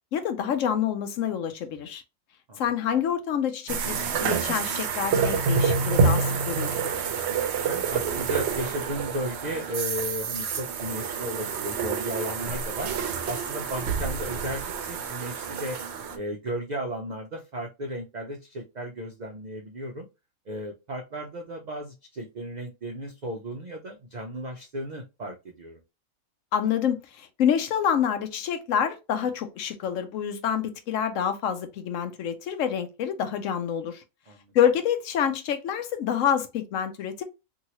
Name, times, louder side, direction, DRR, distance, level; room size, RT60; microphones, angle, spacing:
voice 1, 0.1-2.0 2.6-6.9 26.5-34.0 34.5-37.2, left 8 dB, 70° left, 0.9 m, -27 dB
sound 1, 3.7-16.2, right 5 dB, 65° right, 0.7 m, -28 dB
voice 2, 7.6-12.9 13.2-15.8 16.1-20.1 20.5-25.8 34.3-34.4, equal, 85° right, 0.3 m, -35 dB
2.9 x 2.7 x 2.8 m
omnidirectional pair, 1.5 m